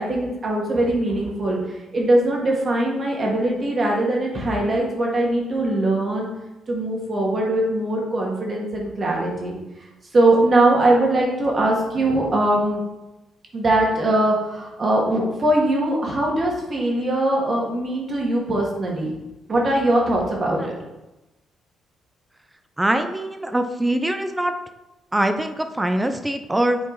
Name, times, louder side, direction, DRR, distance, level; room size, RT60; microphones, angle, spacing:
voice 1, 0.0-6.3 6.7-9.6 10.1-12.8 13.5-19.1 19.5-20.7, right 1 dB, 40° right, -2 dB, 2.1 m, -21 dB
voice 2, 22.8-24.5 25.1-26.8, right 1 dB, 15° right, 8 dB, 0.6 m, -23 dB
7.5 x 4.3 x 4.1 m, 0.99 s
cardioid pair, 90°, 0 cm